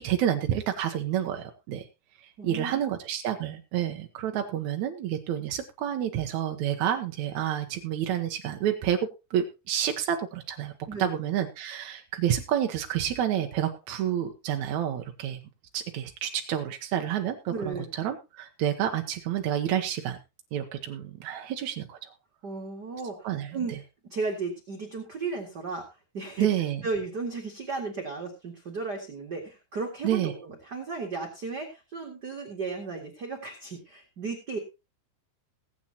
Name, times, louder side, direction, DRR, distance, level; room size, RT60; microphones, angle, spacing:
voice 1, 0.0-1.9 2.4-9.0 9.3-10.7 11.0-15.4 15.7-20.2 20.5-22.1 23.2-23.8 26.4-26.8 30.0-30.3, right 10 dB, 75° right, 5 dB, 1.7 m, -29 dB
voice 2, 2.4-2.9 10.9-11.2 17.5-17.9 22.4-23.8 24.1-25.9 26.1-26.6 26.8-34.6, right 4 dB, 35° right, 1 dB, 2.0 m, -34 dB
20.5 x 8.8 x 2.9 m, 0.27 s
omnidirectional pair, 4.8 m